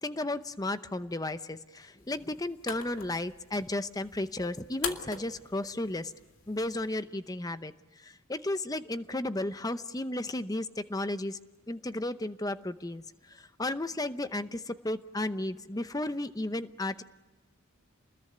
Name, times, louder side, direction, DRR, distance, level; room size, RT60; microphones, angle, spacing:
voice 1, 0.0-6.1 6.5-7.7 8.3-11.4 11.7-13.0 13.6-17.0, left 1 dB, 15° left, 12 dB, 0.8 m, -33 dB
sound 1, 2.0-7.0, left 6 dB, 85° left, 2.3 m, -43 dB
28.0 x 21.0 x 9.6 m, 1.2 s
head